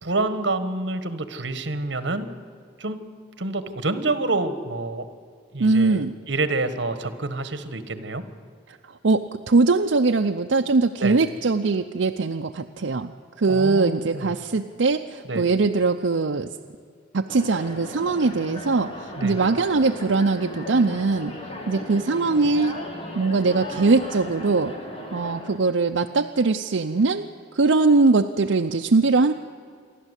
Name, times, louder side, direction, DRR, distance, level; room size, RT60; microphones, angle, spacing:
voice 1, 0.0-2.3 2.8-3.0 3.4-5.1 5.5-8.2 11.0-11.2 13.5-14.3 15.2-15.5 19.2-19.4, right 2 dB, 65° right, 11 dB, 1.5 m, -27 dB
voice 2, 5.6-6.1 8.7-8.8 9.0-13.1 13.4-16.5 17.1-21.3 21.7-22.8 23.1-24.7 25.1-27.3 27.5-29.3, right 3 dB, 90° right, 5 dB, 0.6 m, -21 dB
sound 1, 17.3-25.6, left 1 dB, 30° left, 2.4 m, -36 dB
28.0 x 12.0 x 8.2 m, 2.1 s
head